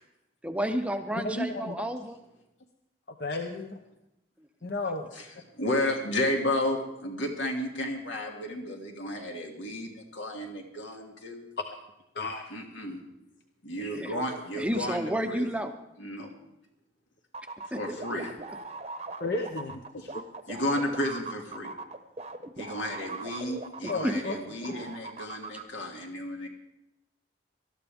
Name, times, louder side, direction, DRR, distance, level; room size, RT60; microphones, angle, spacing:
voice 1, 0.4-2.2 13.9-14.1 14.5-15.7 17.7-18.0 23.8-24.1, right 1 dB, 5° right, 6 dB, 0.6 m, -31 dB
voice 2, 1.2-1.8 3.2-3.7 4.6-5.1 11.6-11.7 12.1-12.5 19.2-20.2 23.9-24.4 24.6-24.9, left 2 dB, 55° left, 5 dB, 0.8 m, -33 dB
voice 3, 5.6-11.4 12.5-13.0 13.6-15.4 16.0-16.3 17.8-18.3 20.5-21.7 22.6-26.5, left 1 dB, 85° left, 1 dB, 2.4 m, -32 dB
sound 1, 17.3-24.4 24.6-25.6, right 3 dB, 35° right, 0.8 m, -40 dB
19.5 x 12.5 x 3.5 m, 0.88 s
head